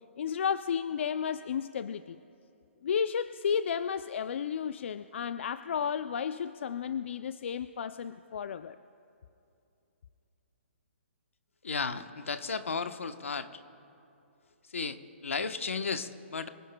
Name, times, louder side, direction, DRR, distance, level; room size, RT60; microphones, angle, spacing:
voice 1, 0.2-2.2 2.8-8.8, left 7 dB, 65° left, 13 dB, 0.4 m, -32 dB
voice 2, 11.6-13.5 14.7-16.5, left 5 dB, 85° left, 9 dB, 0.9 m, -34 dB
25.0 x 17.0 x 2.2 m, 2.7 s
hypercardioid pair, 145°, 7 cm